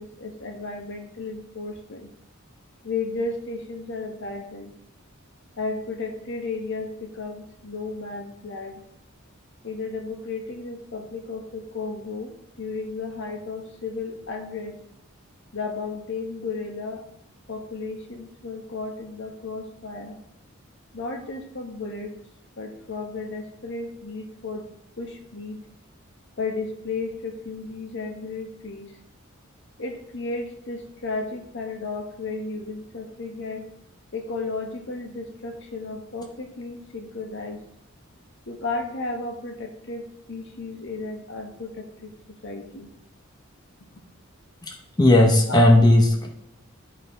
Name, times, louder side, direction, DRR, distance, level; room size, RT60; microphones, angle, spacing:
voice 1, 0.0-2.1 2.8-4.7 5.6-8.8 9.6-14.8 15.5-17.1 17.5-20.2 20.9-22.1 22.6-24.7 25.0-25.6 26.4-29.0 29.8-33.7 34.1-37.6 38.5-42.9 45.5-45.6, left 3 dB, 60° left, 3 dB, 1.3 m, -34 dB
voice 2, 45.0-46.3, left 1 dB, 20° left, 0 dB, 0.8 m, -15 dB
13.0 x 4.4 x 3.6 m, 0.79 s
head